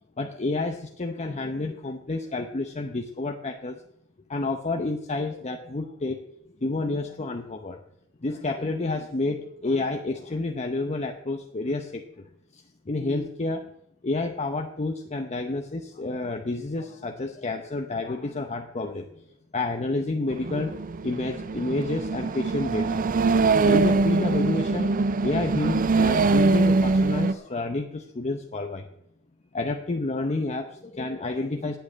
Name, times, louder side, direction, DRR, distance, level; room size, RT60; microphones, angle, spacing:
voice 1, 0.2-3.8 4.3-6.2 6.6-7.8 8.2-12.0 12.9-13.7 14.0-19.0 19.5-23.0 23.6-24.9 25.2-28.8 29.5-31.8, left 2 dB, 30° left, 4 dB, 0.8 m, -29 dB
sound 1, 20.3-27.3, right 3 dB, 40° right, 0.5 m, -23 dB
8.8 x 7.9 x 8.6 m, 0.76 s
head